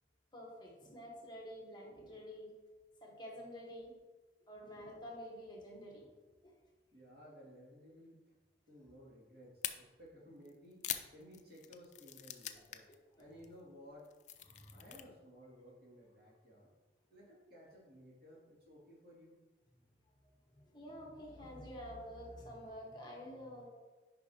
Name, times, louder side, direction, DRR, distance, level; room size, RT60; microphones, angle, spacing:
voice 1, 0.3-2.5 3.0-4.0 4.5-6.1 6.4-6.5 12.5-13.3 14.4-14.9 20.2-23.7, equal, 25° left, -1 dB, 1.3 m, -49 dB
voice 2, 6.9-8.4 8.7-10.8 11.1-12.9 13.2-14.1 14.7-16.7 17.1-19.3, equal, 60° right, -5 dB, 2.3 m, -57 dB
sound 1, 9.6-9.7 10.5-12.9 13.2-13.5 13.9-15.0, left 11 dB, 40° left, 0.4 m, -43 dB
9.4 x 5.4 x 2.9 m, 1.3 s
head